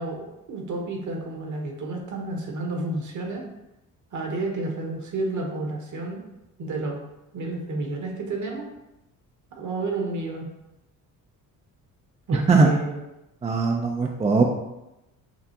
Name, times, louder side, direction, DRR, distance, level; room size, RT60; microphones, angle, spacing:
voice 1, 0.0-3.4 4.1-6.2 6.6-7.0 7.3-8.7 9.5-10.5 12.3-13.0, right 2 dB, 55° right, 1 dB, 1.1 m, -31 dB
voice 2, 12.3-12.7 13.4-14.4, right 4 dB, 20° right, 2 dB, 0.4 m, -20 dB
5.9 x 2.4 x 2.8 m, 0.92 s
cardioid pair, 85°, 36 cm